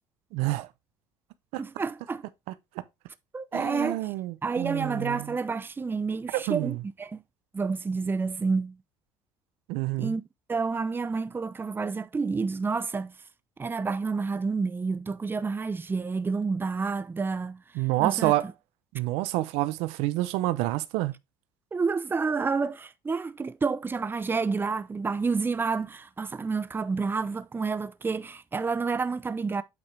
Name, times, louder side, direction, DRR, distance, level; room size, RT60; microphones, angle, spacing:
voice 1, 0.3-0.7 1.5-1.6 3.5-5.3 6.3-6.8 9.7-10.2 17.7-18.5 18.9-21.1, right 17 dB, 80° right, 0.7 m, -28 dB
voice 2, 1.6-2.2 3.3-4.1 4.4-7.2 7.5-8.8 10.0-10.2 10.5-13.1 13.6-17.6 18.0-18.3 21.7-29.6, right 4 dB, 20° right, 0.7 m, -29 dB
8.5 x 5.0 x 3.3 m
supercardioid pair, 85°, 10 cm